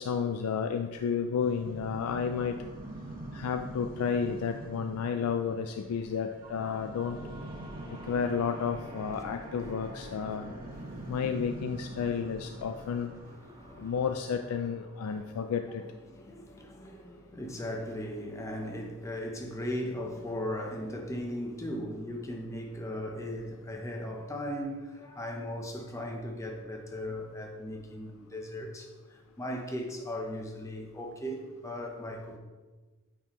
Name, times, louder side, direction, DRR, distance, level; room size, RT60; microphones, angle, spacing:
voice 1, 0.0-2.6 3.3-7.2 8.0-10.5 11.1-13.1 13.8-15.8, left 6 dB, 80° left, 0.3 m, -31 dB
sound 1, 1.4-13.3, right 2 dB, 40° right, 0.5 m, -45 dB
sound 2, 2.1-15.9, equal, 20° right, 1.3 m, -49 dB
voice 2, 13.5-14.0 15.1-15.6 16.1-32.4, left 1 dB, 15° left, 0.7 m, -38 dB
8.9 x 4.2 x 3.0 m
head